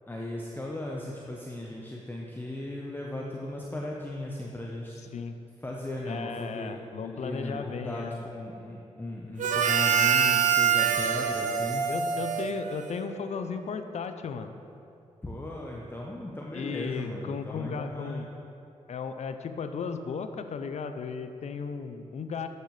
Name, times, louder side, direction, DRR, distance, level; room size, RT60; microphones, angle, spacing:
voice 1, 0.1-5.1 5.6-6.8 7.1-11.8 15.2-18.3, left 1 dB, 15° left, -2 dB, 0.8 m, -37 dB
voice 2, 6.0-8.2 11.9-14.5 16.5-18.3 18.9-22.5, left 5 dB, 60° left, 9 dB, 0.5 m, -35 dB
Harmonica, 9.4-13.2, right 8 dB, 70° right, 0.6 m, -25 dB
8.2 x 6.7 x 3.2 m, 2.7 s
supercardioid pair, 50°, 13 cm